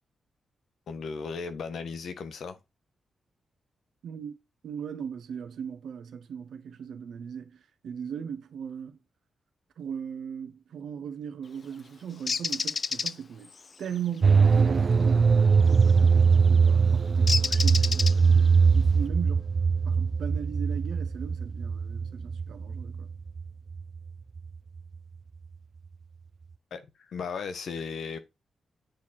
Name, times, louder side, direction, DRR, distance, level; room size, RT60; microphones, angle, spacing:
voice 1, 0.9-2.6 26.7-28.2, left 5 dB, 75° left, 1.2 m, -36 dB
voice 2, 4.0-4.4 4.6-9.0 9.8-13.5 13.8-19.5 19.8-23.1, right 8 dB, 80° right, 1.3 m, -38 dB
Bird, 12.3-13.1 15.7-16.0 17.3-18.5, left 4 dB, 50° left, 0.4 m, -28 dB
sound 1, 14.2-24.1 24.4-24.5, right 5 dB, 50° right, 0.3 m, -22 dB
9.4 x 4.5 x 4.2 m
supercardioid pair, 50°, 0 cm